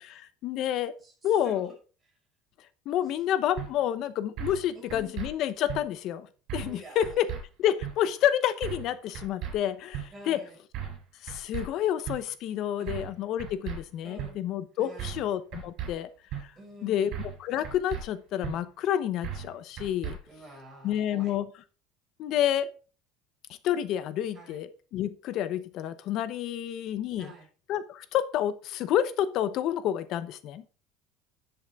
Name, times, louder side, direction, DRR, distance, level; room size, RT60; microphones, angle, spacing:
voice 1, 0.0-0.9 1.2-1.7 2.9-6.3 6.5-7.3 7.6-10.4 11.2-16.1 16.8-17.1 17.4-20.2 20.8-21.4 22.2-22.7 23.6-27.3 27.7-30.6, left 11 dB, 50° left, 14 dB, 0.8 m, -29 dB
voice 2, 1.0-1.6 3.3-3.4 4.7-5.2 6.6-7.3 10.1-10.6 12.8-13.1 14.0-14.4 14.7-15.2 16.6-17.1 20.2-21.3 24.3-24.6 27.2-27.5, right 1 dB, 10° right, -3 dB, 5.5 m, -48 dB
sound 1, 3.6-3.7 4.4-4.6 4.9-5.3 5.7-5.8 6.5-6.8 7.0-7.4 7.8-7.9 8.6-8.9 9.1-9.5 9.9-10.1 10.7-11.0 11.3-11.7 12.1-12.2 12.9-13.1 13.4-13.8 14.2-14.3 15.0-15.3 15.5-15.9 16.3-16.4 17.1-17.4 17.6-18.0 18.4-18.6 19.2-19.5 19.8-20.2, right 9 dB, 50° right, 5.4 m, -35 dB
10.5 x 8.0 x 3.6 m, 0.36 s
cardioid pair, 155°, 0 cm